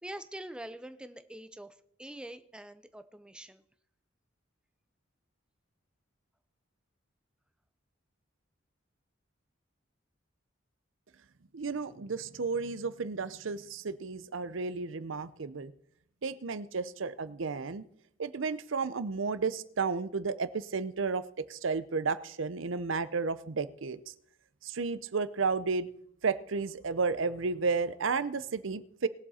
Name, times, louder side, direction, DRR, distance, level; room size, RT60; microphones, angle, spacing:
voice 1, 0.0-3.6, right 1 dB, 5° right, 11 dB, 0.6 m, -45 dB
voice 2, 11.5-15.7 16.2-17.8 18.2-21.2 21.5-24.0 24.6-25.9 26.2-29.1, right 4 dB, 75° right, 15 dB, 0.7 m, -32 dB
20.0 x 7.3 x 4.3 m, 0.71 s
head